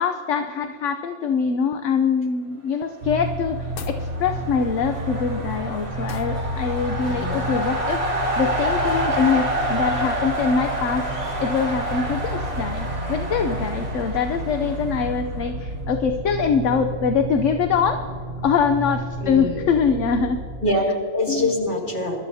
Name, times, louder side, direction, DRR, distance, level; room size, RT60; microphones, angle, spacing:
voice 1, 0.0-11.1 11.4-18.0 18.4-20.4 21.3-21.5, left 6 dB, 70° left, 6 dB, 1.0 m, -23 dB
sound 1, 3.0-20.7, right 1 dB, 75° right, 1.3 m, -31 dB
sound 2, 3.5-15.4, right 1 dB, 25° right, 1.9 m, -28 dB
sound 3, 3.6-4.1 6.1-6.4, left 7 dB, 55° left, 0.7 m, -38 dB
voice 2, 7.1-7.6 19.2-19.7 20.6-22.2, left 1 dB, 40° left, -2 dB, 2.5 m, -24 dB
25.0 x 12.5 x 2.7 m, 2.2 s
omnidirectional pair, 1.3 m